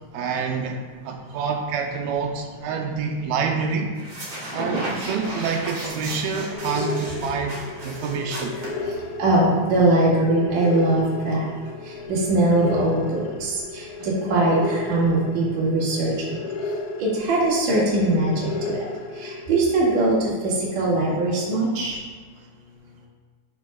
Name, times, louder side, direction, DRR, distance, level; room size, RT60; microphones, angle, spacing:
voice 1, 0.1-3.9 4.5-8.6, right 5 dB, 80° right, 2 dB, 2.4 m, -27 dB
sound 1, 3.9-9.3, right 1 dB, 45° right, 2.9 m, -34 dB
sound 2, 6.5-20.1, left 3 dB, 90° left, 2.7 m, -34 dB
voice 2, 9.2-11.5 12.1-16.4 17.0-18.8 19.2-21.9, right 2 dB, 60° right, -6 dB, 3.4 m, -21 dB
11.5 x 6.2 x 2.3 m, 1.5 s
omnidirectional pair, 4.5 m